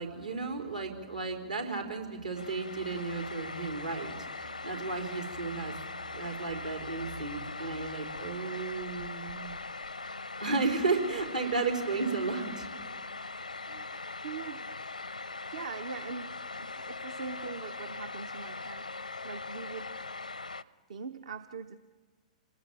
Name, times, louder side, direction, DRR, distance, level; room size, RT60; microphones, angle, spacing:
voice 1, 0.0-5.8 6.1-9.5 10.4-12.6, right 4 dB, 80° right, 3 dB, 4.1 m, -33 dB
sound 1, 2.3-20.6, left 3 dB, 80° left, 0.6 m, -41 dB
voice 2, 13.6-14.7 15.1-18.9 19.2-20.0 20.9-21.8, right 5 dB, 60° right, 10 dB, 0.8 m, -42 dB
27.5 x 20.0 x 7.6 m, 1.4 s
figure-of-eight pair, 110°, 4 cm